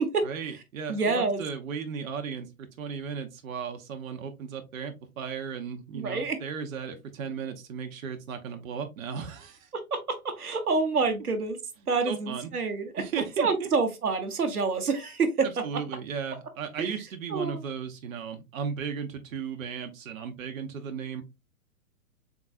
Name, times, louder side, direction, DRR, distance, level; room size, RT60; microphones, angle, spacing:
voice 1, 0.2-9.7 12.1-12.5 13.0-13.7 15.4-21.2, right 6 dB, 65° right, 0.8 m, -36 dB
voice 2, 0.9-1.4 5.9-6.4 9.7-11.6 11.9-13.0 13.4-15.5 16.8-16.9 17.3-17.6, right 4 dB, 90° right, 0.9 m, -27 dB
3.9 x 3.7 x 2.3 m
figure-of-eight pair, 115°, 44 cm